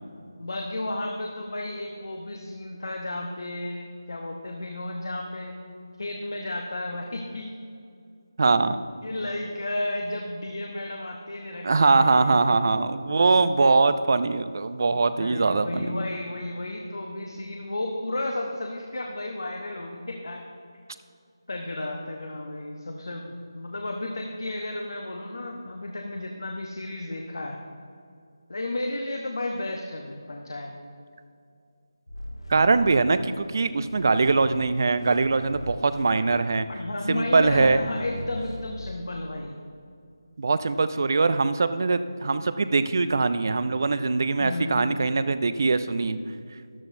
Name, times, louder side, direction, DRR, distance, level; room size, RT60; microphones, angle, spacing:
voice 1, 0.4-5.6 6.0-7.5 9.0-12.4 14.9-20.4 21.5-27.6 28.5-30.7 36.3-36.4 36.7-39.6 44.4-45.2, left 1 dB, 60° left, 1 dB, 1.0 m, -33 dB
voice 2, 8.4-8.8 11.6-15.9 32.5-36.7 37.1-37.8 40.4-46.2, right 3 dB, 50° right, 12 dB, 0.5 m, -22 dB
sound 1, 32.1-33.5 33.8-36.7 37.2-38.9, left 1 dB, 75° left, 2.1 m, -41 dB
13.5 x 11.0 x 2.7 m, 2.4 s
figure-of-eight pair, 160°, 2 cm